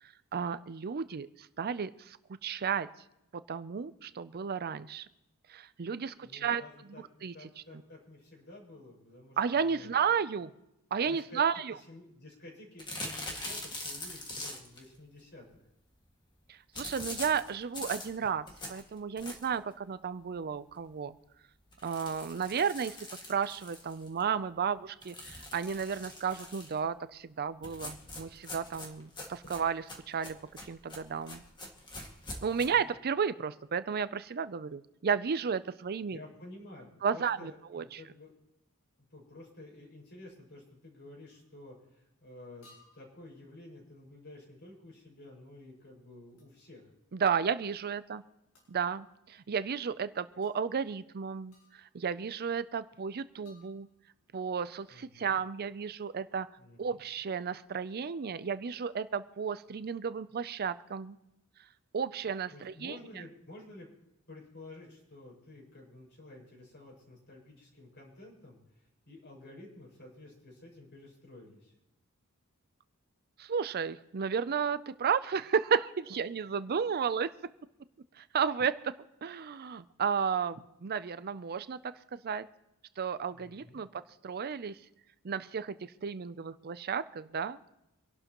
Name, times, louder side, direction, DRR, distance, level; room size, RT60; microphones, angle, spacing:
voice 1, 0.0-2.2 2.4-2.9 3.3-5.1 5.5-6.6 7.2-7.3 9.4-10.5 10.9-11.7 16.5-21.2 21.8-23.0 23.3-30.4 30.7-31.4 32.4-36.2 37.0-38.0 47.1-48.2 48.7-53.9 54.3-56.5 56.8-61.2 61.9-63.0 73.4-77.3 78.2-78.9 79.2-82.5 83.0-84.8 85.2-87.6, right 6 dB, 45° right, 14 dB, 0.5 m, -33 dB
voice 2, 6.2-9.9 11.0-11.4 11.7-15.7 29.4-29.6 32.5-32.9 36.1-38.3 39.1-46.9 54.9-55.4 56.6-57.0 62.5-63.9 64.3-71.7 83.3-83.8, left 2 dB, 55° left, -1 dB, 5.9 m, -52 dB
sound 1, 12.8-14.9 16.7-19.7 20.1-20.2 20.5-20.6 20.9-21.0 21.7-24.2 25.0-26.8 27.6-32.7, left 1 dB, 20° left, 2.0 m, -43 dB
sound 2, 41.3-41.5 42.6-43.2 46.4-46.6 48.5-48.8 50.4-50.5 51.5-52.0 53.4-54.2, left 2 dB, 75° left, 6.6 m, -63 dB
25.5 x 12.0 x 3.0 m, 0.87 s
head